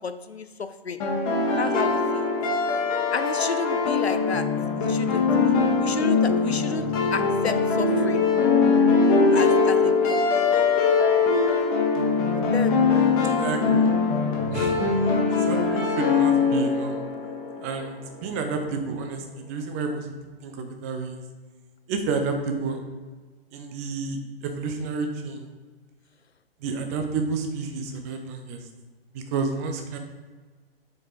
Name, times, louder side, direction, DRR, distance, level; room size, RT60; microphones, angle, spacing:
voice 1, 0.0-1.0 1.6-2.3 3.1-4.5 4.9-8.2 9.3-10.2 12.3-13.1 13.7-13.8, left 5 dB, 90° left, 10 dB, 0.6 m, -32 dB
sound 1, 1.0-17.9, left 4 dB, 35° left, 1.4 m, -22 dB
voice 2, 13.4-13.9 14.5-14.8 15.5-17.0 17.6-20.1 20.4-21.2 21.9-22.8 23.5-25.5 26.6-28.6 29.1-30.0, right 4 dB, 15° right, 5 dB, 0.4 m, -30 dB
6.0 x 4.8 x 3.7 m, 1.4 s
figure-of-eight pair, 120°, 31 cm